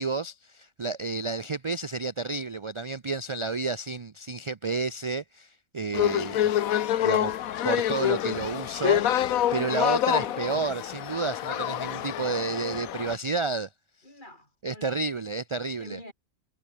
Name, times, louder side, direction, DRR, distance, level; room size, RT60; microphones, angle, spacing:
voice 1, 0.0-6.5 7.0-7.4 7.6-13.7 14.6-16.0, right 4 dB, 40° right, 0.4 m, -31 dB
sound 1, 5.9-13.2, left 11 dB, 80° left, 1.2 m, -27 dB
voice 2, 10.1-10.5 11.5-11.8 14.0-15.1 15.8-16.1, left 1 dB, 35° left, 6.8 m, -46 dB
omnidirectional pair, 1.4 m